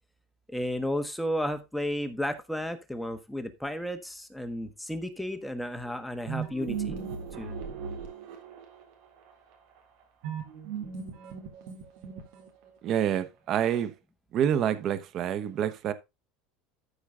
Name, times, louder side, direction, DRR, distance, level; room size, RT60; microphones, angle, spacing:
voice 1, 0.5-7.0 7.4-7.5, equal, ahead, 1.3 m, -33 dB
sound 1, 6.3-8.8 10.2-12.7, right 7 dB, 65° right, 3.6 m, -37 dB
voice 2, 12.8-13.9 14.3-15.9, right 9 dB, 40° right, 1.1 m, -27 dB
13.5 x 5.0 x 3.8 m
supercardioid pair, 140°, 0 cm